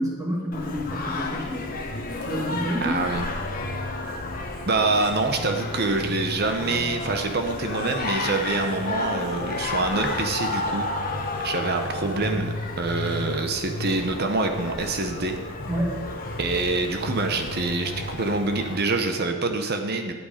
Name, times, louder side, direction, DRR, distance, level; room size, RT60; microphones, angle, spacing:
voice 1, 0.0-1.7 2.2-3.0 15.7-16.0, equal, 15° right, -2 dB, 2.0 m, -28 dB
Singing, 0.5-18.8, left 2 dB, 40° left, 1.1 m, -31 dB
voice 2, 2.8-3.3 4.7-10.9 11.4-15.4 16.4-20.1, right 3 dB, 45° right, 5 dB, 0.9 m, -26 dB
11.5 x 8.1 x 5.0 m, 1.4 s
head